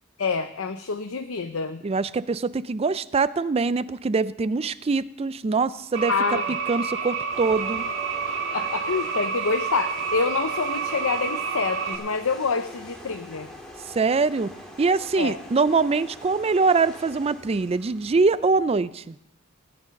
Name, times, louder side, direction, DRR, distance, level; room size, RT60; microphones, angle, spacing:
voice 1, 0.2-1.8 6.1-6.6 8.5-13.5 15.2-15.4, left 4 dB, 65° left, 8 dB, 0.7 m, -27 dB
voice 2, 1.8-6.1 6.7-7.8 13.9-14.5 14.8-19.2, right 4 dB, 30° right, 16 dB, 0.4 m, -23 dB
sound 1, 5.9-12.0, right 6 dB, 55° right, 2.1 m, -29 dB
sound 2, 7.3-18.7, left 1 dB, 5° left, 1.9 m, -44 dB
16.5 x 9.8 x 5.3 m, 0.81 s
head